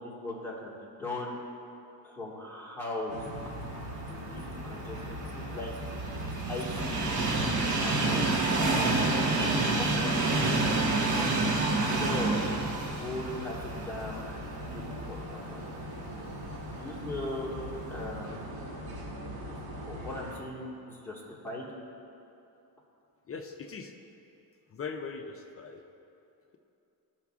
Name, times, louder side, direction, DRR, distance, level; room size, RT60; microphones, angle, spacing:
voice 1, 0.0-1.3 2.0-3.2 4.1-5.7 6.5-8.7 9.1-10.6 12.0-12.3 12.8-15.6 16.8-17.5 17.9-18.4 19.8-21.7, left 2 dB, 5° left, -6 dB, 1.6 m, -39 dB
sound 1, 3.1-20.4, equal, 75° right, 1.7 m, -40 dB
Train, 4.7-14.8 15.3-15.4 16.5-16.6, right 2 dB, 50° right, 1.0 m, -28 dB
voice 2, 23.3-23.9 24.7-25.8, left 5 dB, 40° left, 5 dB, 0.4 m, -40 dB
15.0 x 5.7 x 2.4 m, 2.8 s
cardioid pair, 140°, 38 cm